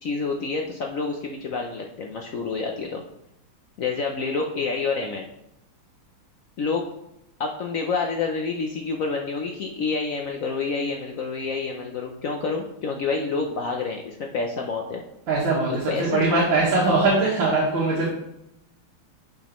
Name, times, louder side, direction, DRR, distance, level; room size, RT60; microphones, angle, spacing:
voice 1, 0.0-3.0 3.8-5.3 6.6-6.9 7.4-15.0 15.9-16.3, left 4 dB, 80° left, 2 dB, 0.7 m, -28 dB
voice 2, 15.3-18.1, right 3 dB, 70° right, -5 dB, 2.3 m, -21 dB
10.5 x 5.0 x 3.1 m, 0.82 s
omnidirectional pair, 2.3 m